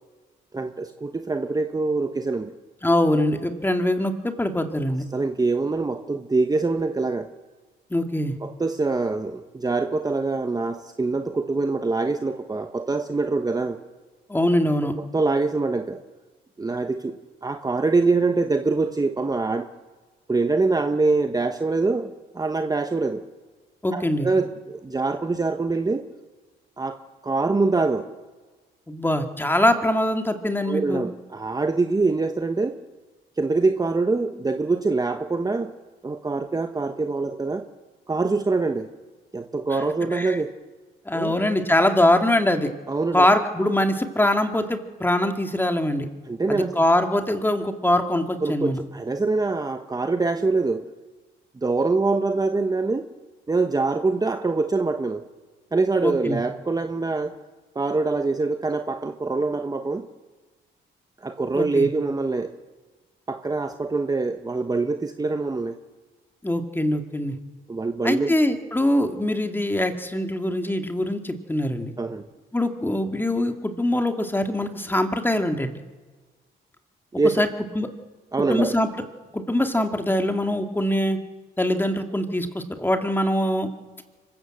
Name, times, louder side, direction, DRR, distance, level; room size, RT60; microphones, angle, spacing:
voice 1, 0.5-2.5 5.1-7.3 8.4-13.8 15.1-16.0 16.6-19.7 20.3-23.2 23.9-26.0 26.8-27.0 27.2-28.1 30.6-32.8 33.4-35.7 36.0-37.7 38.1-38.9 39.3-40.5 41.1-41.3 42.9-43.3 46.3-46.8 48.4-50.8 51.6-53.1 53.5-55.2 55.7-57.3 57.7-60.0 61.2-62.5 63.3-65.8 67.7-68.3 72.0-72.2 77.2-77.4 78.3-78.8, right 3 dB, 20° right, 7 dB, 1.1 m, -24 dB
voice 2, 2.8-5.0 7.9-8.4 14.3-14.9 23.8-24.3 28.9-31.0 39.7-39.8 40.1-40.4 41.1-42.7 43.1-46.1 46.5-48.8 56.0-56.4 61.5-61.9 66.4-67.4 68.0-71.9 72.5-75.8 77.4-77.5 77.7-77.9 78.5-78.9 79.3-81.2 81.6-83.7, left 1 dB, 10° left, 6 dB, 2.3 m, -23 dB
25.0 x 15.0 x 7.8 m, 1.3 s
cardioid pair, 90°, 20 cm